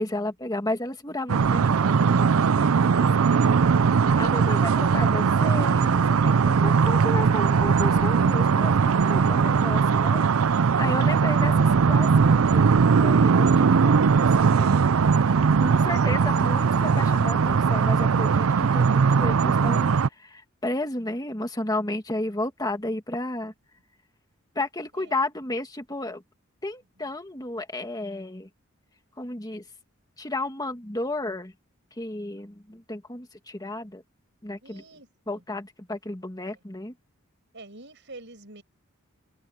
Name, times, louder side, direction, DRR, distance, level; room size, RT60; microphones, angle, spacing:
voice 1, 0.0-10.3 10.5-14.8 15.1-23.5 24.6-26.2 26.6-28.5 29.2-29.6 30.2-31.5 32.0-34.0 34.4-34.8 35.3-36.9, left 2 dB, 20° left, 1.9 m, -33 dB
sound 1, 1.3-20.1, right 5 dB, 90° right, 0.5 m, -20 dB
voice 2, 15.4-16.1 24.9-25.1 27.0-27.1 34.6-35.1 35.3-35.4 37.5-38.6, right 2 dB, 60° right, 7.2 m, -47 dB
head